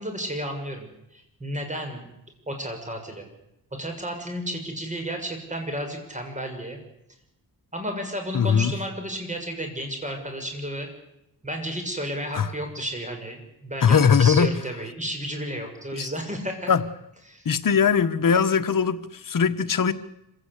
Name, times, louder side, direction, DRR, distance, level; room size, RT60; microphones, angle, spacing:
voice 1, 0.0-2.1 2.5-3.3 3.8-6.8 7.7-10.9 11.4-16.7 17.3-17.4, equal, 20° right, 5 dB, 6.7 m, -32 dB
voice 2, 8.3-8.7 12.3-12.5 13.8-14.5 16.0-16.1 16.7-16.8 17.4-19.9, left 6 dB, 55° left, 10 dB, 1.4 m, -20 dB
26.0 x 16.5 x 8.3 m, 0.86 s
cardioid pair, 95°, 39 cm